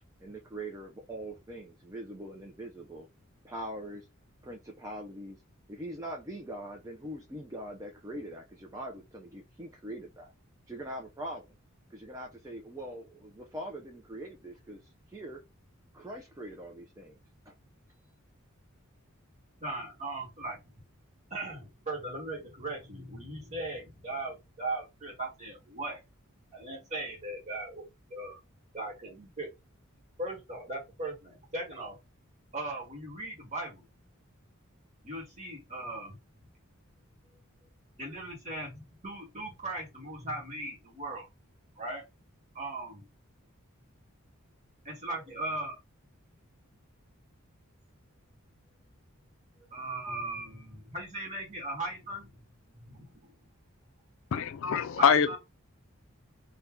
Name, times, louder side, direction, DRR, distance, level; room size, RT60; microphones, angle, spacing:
voice 1, 0.2-3.1 3.4-4.1 4.4-5.4 5.7-10.3 10.7-11.6 11.9-15.4 15.9-17.2 17.5-17.6, right 1 dB, 15° right, 0.4 m, -42 dB
voice 2, 19.6-20.8 21.3-26.0 26.5-27.8 28.1-28.4 28.7-29.5 30.2-32.0 32.5-33.8 35.0-36.2 38.0-41.3 41.8-42.0 42.5-43.1 44.8-45.8 49.7-53.5 55.0-55.4, right 2 dB, 35° right, 1.4 m, -38 dB
voice 3, 54.3-55.4, left 7 dB, 65° left, 0.4 m, -24 dB
2.7 x 2.2 x 3.5 m
head